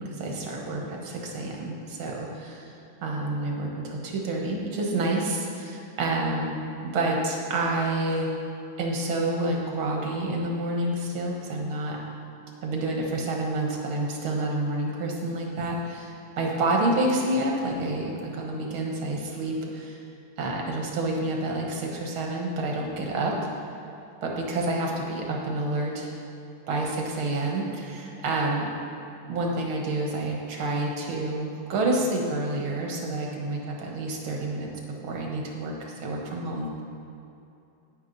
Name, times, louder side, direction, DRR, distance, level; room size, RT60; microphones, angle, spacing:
voice 1, 0.0-2.7 3.0-6.6 6.9-8.3 8.8-12.0 12.6-20.0 20.4-23.5 24.2-26.1 26.7-28.7 29.3-34.7 35.0-36.8, right 2 dB, 75° right, -1 dB, 2.1 m, -28 dB
9.8 x 9.1 x 4.0 m, 2.7 s
omnidirectional pair, 2.3 m